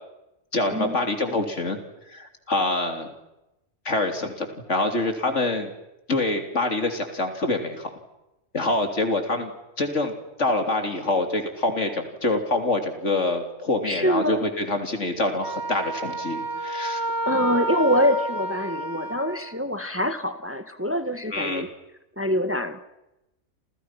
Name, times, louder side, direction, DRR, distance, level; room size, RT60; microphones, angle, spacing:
voice 1, 0.5-1.8 2.1-3.1 3.9-5.7 6.1-7.9 8.5-9.5 9.8-10.1 10.4-17.0 21.3-21.7, left 2 dB, 70° left, 5 dB, 3.7 m, -25 dB
voice 2, 13.8-14.4 17.3-21.7 22.2-22.8, equal, 10° right, 8 dB, 1.6 m, -25 dB
Wind instrument woodwind instrument, 15.4-19.6, right 1 dB, 60° right, 1.8 m, -30 dB
28.5 x 28.5 x 6.0 m, 0.92 s
omnidirectional pair, 1.3 m